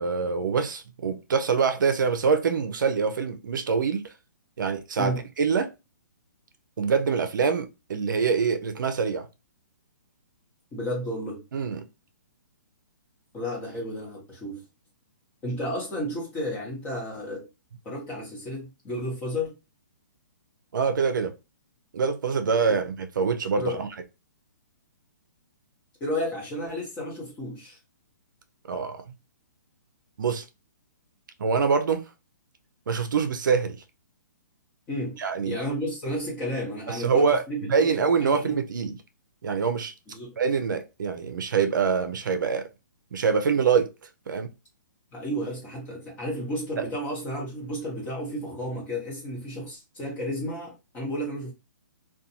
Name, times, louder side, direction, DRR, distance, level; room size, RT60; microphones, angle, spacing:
voice 1, 0.0-4.1 4.6-5.7 6.8-9.3 11.5-11.8 20.7-21.4 21.9-23.9 28.7-29.0 30.2-30.4 31.4-32.0 32.9-33.8 35.2-35.6 36.9-37.4 37.7-39.0 39.4-39.9 40.4-42.7 43.1-43.9 44.3-44.5 46.8-46.9, right 5 dB, 80° right, 0.5 m, -25 dB
voice 2, 10.7-11.4 13.3-14.6 15.4-17.5 17.8-19.5 22.7-22.8 23.6-23.8 26.0-27.8 34.9-35.2 35.4-38.6 40.1-40.4 45.1-51.5, equal, 15° left, 1.0 m, -32 dB
2.5 x 2.3 x 2.8 m
hypercardioid pair, 165°, 10 cm